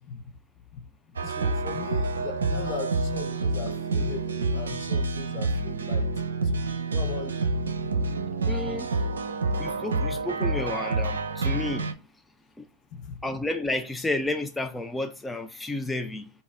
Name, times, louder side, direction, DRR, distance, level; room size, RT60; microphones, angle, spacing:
voice 1, 0.0-8.0 8.6-8.8 12.9-13.2, left 7 dB, 45° left, 0.7 m, -39 dB
sound 1, 1.2-11.9, right 3 dB, 90° right, 0.6 m, -28 dB
voice 2, 8.5-8.9 9.6-11.9 12.6-12.7 13.2-16.3, left 2 dB, 5° left, 0.4 m, -31 dB
5.2 x 2.3 x 3.4 m
hypercardioid pair, 110°, 0 cm